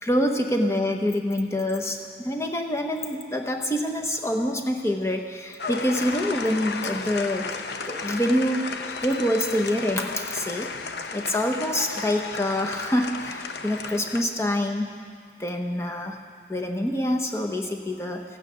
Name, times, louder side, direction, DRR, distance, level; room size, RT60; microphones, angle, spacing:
voice 1, 0.0-8.7 9.0-10.7 11.1-14.9 15.4-16.2 16.5-18.2, left 1 dB, 15° left, 3 dB, 0.9 m, -26 dB
sound 1, 5.6-14.2, left 4 dB, 65° left, 0.6 m, -34 dB
15.5 x 9.1 x 6.2 m, 2.1 s
head